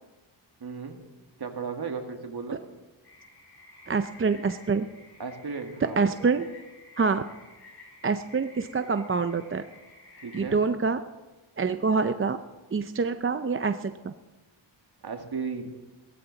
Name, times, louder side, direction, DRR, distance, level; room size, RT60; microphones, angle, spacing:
voice 1, 0.6-1.0 1.4-2.6 5.2-6.3 10.2-10.6 15.0-15.8, right 5 dB, 50° right, 5 dB, 1.9 m, -35 dB
sound 1, 3.0-10.5, left 2 dB, 55° left, 5.6 m, -52 dB
voice 2, 3.9-4.9 6.0-6.5 7.0-7.2 8.0-9.7 10.3-11.0 11.6-12.4 12.7-14.1, right 4 dB, 30° right, 9 dB, 0.5 m, -26 dB
17.0 x 14.0 x 4.0 m, 1.1 s
cardioid pair, 85°, 47 cm